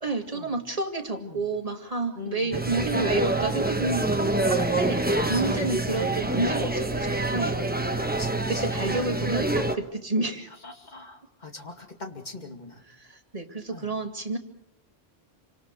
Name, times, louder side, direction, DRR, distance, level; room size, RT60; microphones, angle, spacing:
voice 1, 0.0-5.0 5.3-7.6 8.5-10.5 12.9-14.4, right 3 dB, 35° right, 4 dB, 2.1 m, -30 dB
voice 2, 2.1-3.1 5.6-6.0 8.0-8.7 10.6-12.8 13.7-13.9, left 3 dB, 45° left, 3 dB, 2.5 m, -42 dB
sound 1, 2.5-9.8, right 2 dB, 10° right, 1.1 m, -26 dB
28.5 x 25.5 x 4.7 m, 0.77 s
omnidirectional pair, 1.1 m